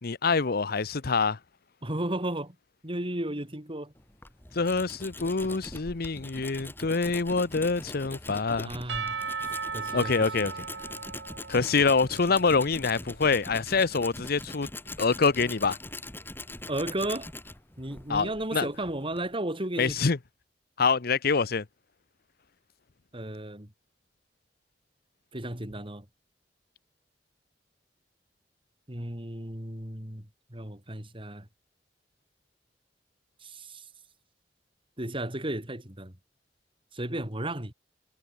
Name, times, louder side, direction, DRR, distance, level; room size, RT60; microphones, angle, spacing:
voice 1, 0.0-1.4 4.6-8.7 9.9-10.5 11.5-14.7 15.0-15.8 18.1-18.7 19.8-20.2 20.8-21.6, left 4 dB, 60° left, 0.8 m, -25 dB
voice 2, 1.8-2.5 2.8-3.9 8.6-9.2 9.7-10.5 16.7-17.3 17.8-20.0 23.1-23.7 25.3-26.0 28.9-31.5 33.4-33.8 35.0-36.1 36.9-37.7, right 1 dB, 30° right, 4.9 m, -34 dB
Tools, 4.0-19.3, left 2 dB, 15° left, 2.2 m, -42 dB
Percussion / Church bell, 8.9-12.8, right 5 dB, 90° right, 3.4 m, -37 dB
head